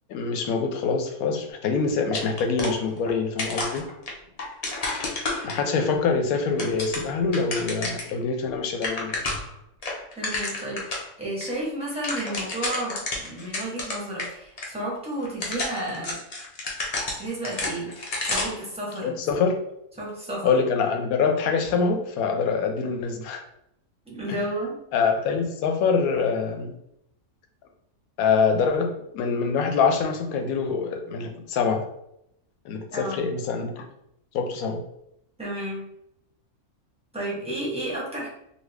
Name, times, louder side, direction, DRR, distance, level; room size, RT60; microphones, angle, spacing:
voice 1, 0.1-3.9 5.4-9.2 19.0-19.5 20.4-23.4 24.3-24.4 24.9-26.7 28.2-31.8 32.6-33.8 34.3-34.8, left 5 dB, 80° left, 4 dB, 1.0 m, -25 dB
sound 1, 2.1-3.1 3.4-5.9 6.3-8.1 8.5-8.6 8.7-9.5 9.8-11.1 11.4-11.5 11.8-14.3 14.6-14.7 15.2-18.6, left 2 dB, 60° left, 0.4 m, -31 dB
voice 2, 10.1-16.2 17.2-17.9 18.2-19.5 20.0-20.6 24.0-24.8 32.9-33.3 35.4-35.9 37.1-38.3, right 1 dB, 5° right, -5 dB, 0.7 m, -32 dB
2.8 x 2.5 x 3.3 m, 0.78 s
omnidirectional pair, 1.5 m